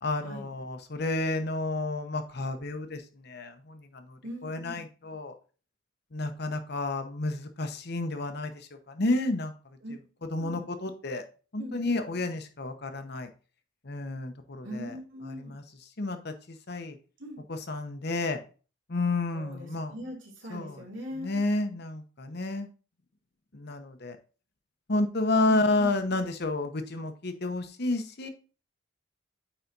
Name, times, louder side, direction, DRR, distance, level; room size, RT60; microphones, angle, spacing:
voice 1, 0.0-5.3 6.1-9.5 10.3-11.2 11.5-13.3 13.8-15.0 15.2-17.0 17.5-18.4 18.9-19.9 20.5-20.8 21.2-22.7 23.5-24.2 24.9-28.3, left 2 dB, 50° left, 7 dB, 0.9 m, -31 dB
voice 2, 4.2-4.8 9.8-9.9 10.3-10.6 11.6-12.0 14.6-15.5 17.2-17.4 19.3-21.4 25.5-25.9, equal, 65° right, -1 dB, 2.8 m, -41 dB
8.9 x 4.2 x 4.0 m, 0.37 s
head